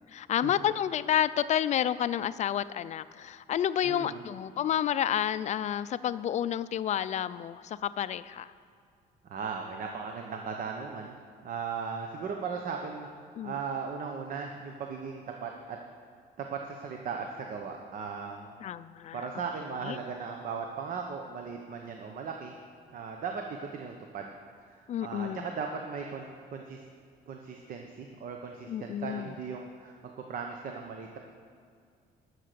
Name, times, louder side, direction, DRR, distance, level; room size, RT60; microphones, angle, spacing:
voice 1, 0.1-8.5 13.3-13.6 18.6-19.3 19.8-20.0 24.9-25.5 28.7-29.4, left 10 dB, 45° left, 15 dB, 0.4 m, -30 dB
voice 2, 3.8-4.2 9.2-11.2 11.4-13.1 13.4-15.8 16.4-18.5 19.1-22.5 22.9-24.3 24.7-26.8 27.3-31.2, right 5 dB, 55° right, 3 dB, 1.0 m, -37 dB
11.5 x 6.6 x 6.8 m, 2.2 s
cardioid pair, 110°, 17 cm